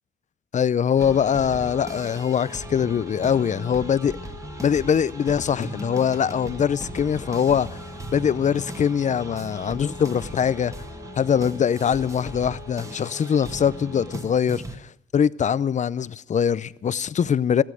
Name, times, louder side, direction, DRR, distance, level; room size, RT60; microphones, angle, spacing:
voice 1, 0.5-4.2 4.6-7.8 8.1-10.7 11.2-17.6, left 8 dB, 35° left, 0.5 m, -22 dB
Wind instrument woodwind instrument, 0.9-14.4, left 5 dB, 55° left, 1.7 m, -45 dB
sound 1, 1.0-14.8, right 2 dB, 15° right, 1.6 m, -38 dB
15.0 x 13.5 x 6.3 m
cardioid pair, 90°, 20 cm